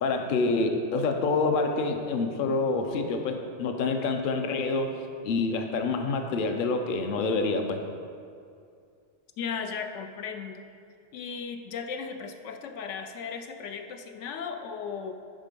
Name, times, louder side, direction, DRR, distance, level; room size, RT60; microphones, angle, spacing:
voice 1, 0.0-5.0 5.2-7.8, left 3 dB, 55° left, 5 dB, 0.7 m, -27 dB
voice 2, 9.4-10.7 11.1-15.1, left 6 dB, 85° left, 6 dB, 0.9 m, -36 dB
7.4 x 4.9 x 5.2 m, 2.4 s
omnidirectional pair, 1.2 m